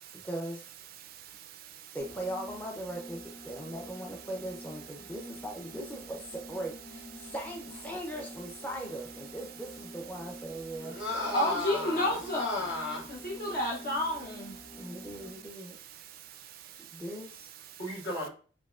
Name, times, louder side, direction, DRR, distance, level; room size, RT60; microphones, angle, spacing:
voice 1, 0.1-0.7 1.9-11.0 14.8-15.8 16.8-17.5, right 1 dB, 10° left, 0.5 m, -39 dB
voice 2, 1.0-2.0 3.5-3.8 7.2-7.3 10.8-11.0 14.6-17.8, right 11 dB, 50° right, 0.4 m, -50 dB
sound 1, 2.0-15.5, equal, 35° left, 1.6 m, -48 dB
voice 3, 10.8-13.0 17.8-18.3, left 2 dB, 65° left, 2.0 m, -34 dB
voice 4, 11.3-12.6 13.1-14.6, left 1 dB, 50° left, 0.7 m, -30 dB
4.5 x 3.0 x 2.3 m
head